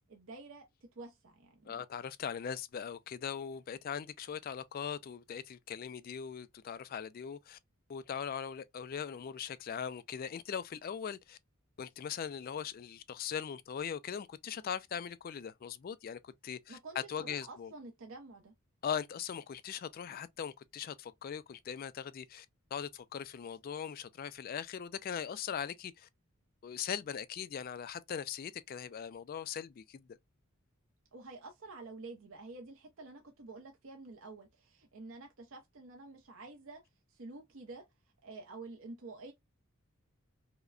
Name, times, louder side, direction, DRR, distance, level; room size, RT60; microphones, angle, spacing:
voice 1, 0.1-1.7 16.7-18.5 31.1-36.8 37.1-37.9 38.2-39.3, right 3 dB, 65° right, 0.7 m, -49 dB
voice 2, 1.7-7.6 7.9-11.4 11.8-16.8 17.1-17.7 18.8-22.5 22.7-26.1 26.6-30.1, left 7 dB, 45° left, 0.3 m, -40 dB
4.8 x 2.1 x 2.4 m
head